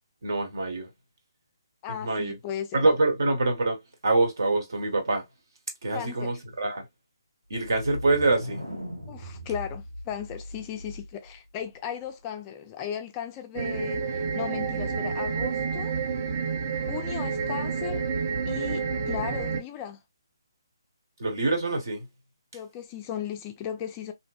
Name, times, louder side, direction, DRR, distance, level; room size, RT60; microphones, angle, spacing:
voice 1, 0.2-0.9 2.0-2.3 2.7-5.2 5.8-6.8 7.5-8.6 21.2-22.0, right 2 dB, 60° right, 1.0 m, -25 dB
voice 2, 1.8-2.9 5.9-6.3 9.1-15.9 16.8-18.0 18.5-20.0 22.5-24.1, left 9 dB, 20° left, 0.3 m, -36 dB
sound 1, 7.6-11.3, equal, 85° right, 1.2 m, -39 dB
sound 2, 13.5-19.6, right 5 dB, 40° right, 0.5 m, -29 dB
2.6 x 2.1 x 2.3 m
figure-of-eight pair, 140°, 2 cm